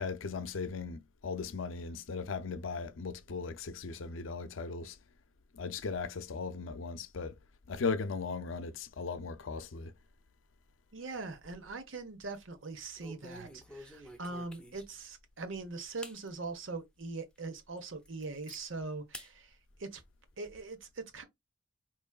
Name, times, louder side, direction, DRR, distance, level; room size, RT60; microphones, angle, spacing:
voice 1, 0.0-5.0 5.5-7.4 7.7-9.9, left 4 dB, 85° left, 0.5 m, -37 dB
voice 2, 10.9-20.0 20.4-21.2, right 3 dB, 85° right, 1.0 m, -42 dB
sound 1, 11.1-11.9 12.2-12.4 13.0-15.1 15.5-15.6 16.0-16.2 16.7-16.8 17.4-17.5 17.8-18.6 19.1-19.3 19.7-20.6, left 1 dB, 5° left, 0.5 m, -50 dB
4.6 x 3.0 x 2.3 m
head